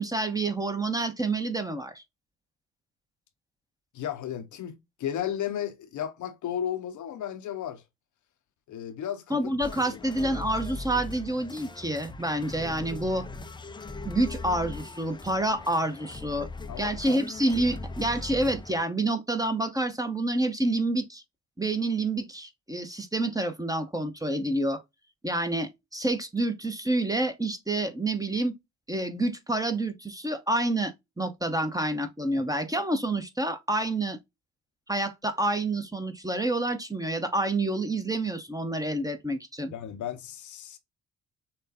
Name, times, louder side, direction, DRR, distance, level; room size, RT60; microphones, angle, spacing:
voice 1, 0.0-2.0 9.3-13.3 14.0-16.5 16.8-21.2 21.6-24.8 25.2-28.6 28.9-34.2 34.9-39.7, right 1 dB, 10° right, 0.9 m, -28 dB
voice 2, 3.9-7.8 8.7-9.5 9.9-10.0 16.7-17.2 39.7-40.8, left 10 dB, 50° left, 0.7 m, -34 dB
sound 1, 9.6-18.8, left 3 dB, 10° left, 0.5 m, -40 dB
6.5 x 2.2 x 2.7 m
figure-of-eight pair, 45°, 38 cm